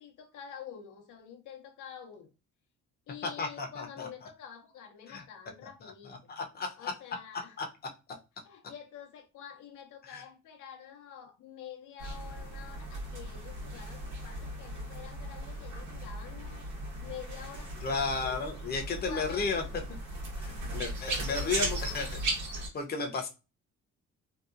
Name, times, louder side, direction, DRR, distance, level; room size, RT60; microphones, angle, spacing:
voice 1, 0.0-2.3 3.1-6.4 6.8-7.6 8.4-16.7 17.0-18.3 18.9-19.7 20.5-22.1, left 8 dB, 80° left, 0.7 m, -48 dB
voice 2, 3.2-4.1 5.1-5.2 5.8-6.9 7.6-7.7 10.0-10.2 17.8-19.8 20.4-22.1 22.5-23.3, left 4 dB, 35° left, 0.7 m, -34 dB
sound 1, 12.0-22.7, right 1 dB, 80° right, 1.1 m, -37 dB
2.7 x 2.2 x 2.4 m
cardioid pair, 90°, 30 cm